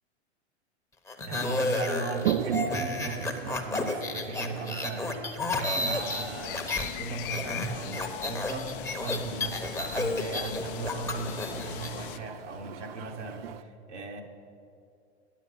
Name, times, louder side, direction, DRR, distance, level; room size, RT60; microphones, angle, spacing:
sound 1, 1.1-6.9 7.2-11.9, left 2 dB, 10° left, 0.8 m, -32 dB
voice 1, 1.2-14.2, right 3 dB, 80° right, 2 dB, 1.3 m, -37 dB
Toilet flush, 2.1-13.6, right 11 dB, 60° right, 0.5 m, -39 dB
sound 2, 5.7-12.2, left 13 dB, 50° left, 0.5 m, -40 dB
9.8 x 8.0 x 5.5 m, 2.4 s
figure-of-eight pair, 95°, 34 cm